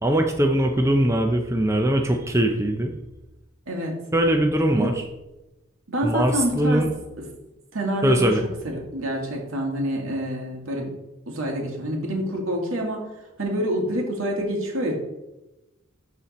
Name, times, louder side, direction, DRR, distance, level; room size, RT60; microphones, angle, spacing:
voice 1, 0.0-2.9 4.1-4.9 6.0-6.9 8.0-8.4, right 1 dB, 15° right, 3 dB, 0.5 m, -21 dB
voice 2, 3.7-4.0 4.8-4.9 5.9-6.9 7.2-7.3 7.7-8.3 8.6-10.9 11.3-13.0 13.4-15.0, equal, 75° right, 0 dB, 2.2 m, -27 dB
12.5 x 4.2 x 4.2 m, 1.0 s
head